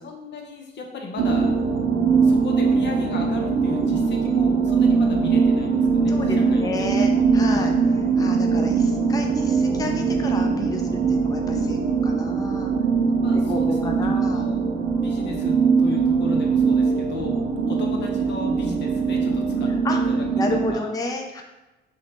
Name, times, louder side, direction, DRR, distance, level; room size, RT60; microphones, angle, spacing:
voice 1, 0.0-1.5 2.2-6.9 7.5-7.7 13.2-17.4 17.7-20.4 20.7-20.8, left 3 dB, 60° left, 2 dB, 0.9 m, -36 dB
sound 1, 1.2-20.7, right 5 dB, 80° right, 0.6 m, -21 dB
voice 2, 6.1-7.7 8.2-12.7 13.3-14.5 19.7-21.4, left 2 dB, 20° left, 2 dB, 0.5 m, -31 dB
4.8 x 2.9 x 3.1 m, 1.1 s
cardioid pair, 90°, 20 cm